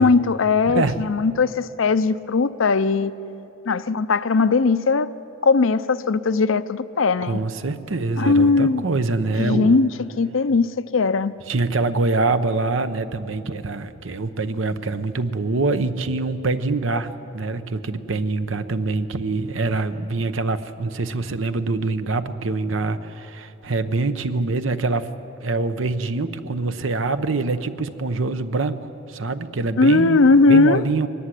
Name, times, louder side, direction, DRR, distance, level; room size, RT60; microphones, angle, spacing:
voice 1, 0.0-3.1 3.7-5.1 5.4-7.4 8.2-8.8 9.4-9.9 10.2-11.3 29.8-30.8, left 4 dB, 75° left, 13 dB, 0.6 m, -18 dB
voice 2, 0.7-1.0 7.2-9.8 11.5-25.1 25.4-30.2 30.5-31.1, right 3 dB, 70° right, 11 dB, 0.9 m, -24 dB
23.0 x 14.0 x 9.9 m, 3.0 s
head